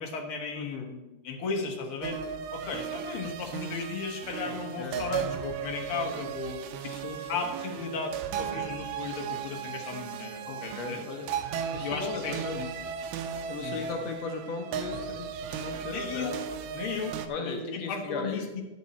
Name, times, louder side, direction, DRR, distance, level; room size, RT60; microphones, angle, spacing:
voice 1, 0.0-2.2 2.5-6.9 7.3-11.0 11.8-12.7 13.6-13.9 15.9-16.4 16.7-17.2 17.4-18.6, left 4 dB, 60° left, 2 dB, 1.5 m, -35 dB
voice 2, 0.5-0.9 4.4-5.2 6.8-7.4 10.5-11.3 11.7-12.7 13.5-16.4 17.3-18.5, left 4 dB, 90° left, 4 dB, 1.4 m, -38 dB
sound 1, 2.0-17.3, right 8 dB, 85° right, 2.6 m, -36 dB
11.5 x 8.2 x 4.2 m, 1.1 s
omnidirectional pair, 4.3 m